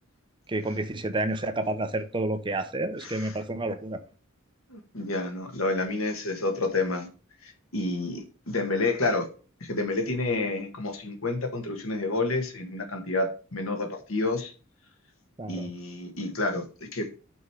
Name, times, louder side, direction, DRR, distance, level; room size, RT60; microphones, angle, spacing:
voice 1, 0.5-4.0 15.4-15.7, right 2 dB, 25° right, 0.7 m, -30 dB
voice 2, 3.0-3.3 4.7-7.1 7.7-9.3 9.6-14.5 15.5-17.1, left 2 dB, 90° left, 1.6 m, -29 dB
6.3 x 4.9 x 4.7 m
head